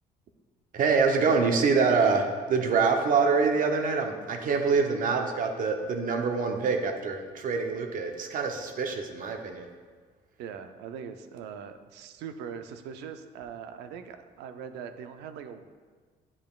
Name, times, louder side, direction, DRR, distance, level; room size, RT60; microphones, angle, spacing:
voice 1, 0.7-9.7, right 4 dB, 55° right, 4 dB, 0.8 m, -25 dB
voice 2, 10.4-15.7, right 7 dB, 85° right, 8 dB, 0.5 m, -41 dB
9.6 x 5.1 x 2.4 m, 1.5 s
cardioid pair, 110°, 17 cm